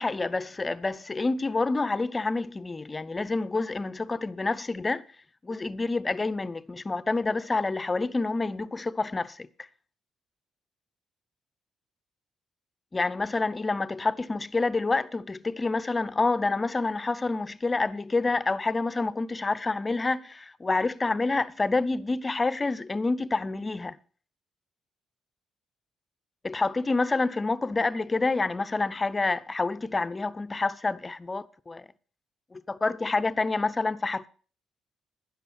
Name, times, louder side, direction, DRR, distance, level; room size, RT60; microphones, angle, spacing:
voice 1, 0.0-5.0 5.4-9.5 12.9-24.0 26.4-31.9 32.5-34.3, left 3 dB, 25° left, 0.6 m, -28 dB
11.5 x 11.0 x 4.3 m
cardioid pair, 90°, 0 cm